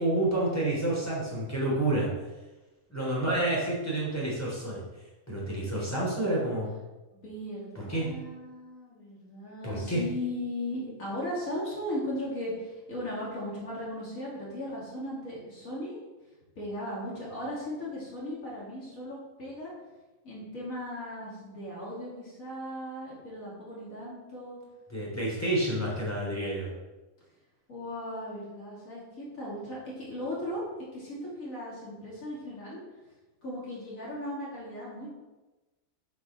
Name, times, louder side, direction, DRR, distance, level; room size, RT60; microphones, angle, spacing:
voice 1, 0.0-2.1 2.9-4.8 5.3-6.7 7.8-8.1 9.6-10.0 24.9-26.7, right 1 dB, 10° left, -5 dB, 3.5 m, -29 dB
voice 2, 7.1-16.1 16.5-19.7 20.2-24.6 27.7-30.6 30.9-32.8 33.4-35.2, left 1 dB, 70° left, -6 dB, 3.1 m, -37 dB
8.1 x 5.7 x 6.1 m, 1.1 s
omnidirectional pair, 1.5 m